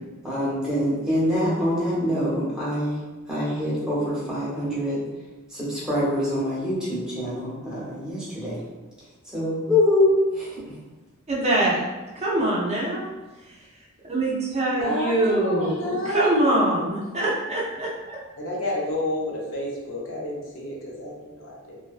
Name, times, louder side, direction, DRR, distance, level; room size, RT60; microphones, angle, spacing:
voice 1, 0.2-3.0 3.3-5.0 5.5-8.6 9.3-10.7, left 1 dB, 5° right, -9 dB, 0.8 m, -24 dB
voice 2, 11.3-11.8 12.1-13.1 13.5-13.6 14.1-18.2, right 1 dB, 30° right, -5 dB, 0.4 m, -24 dB
voice 3, 14.8-16.6 18.4-21.8, left 1 dB, 65° left, -3 dB, 0.6 m, -29 dB
2.5 x 2.2 x 2.4 m, 1.2 s
head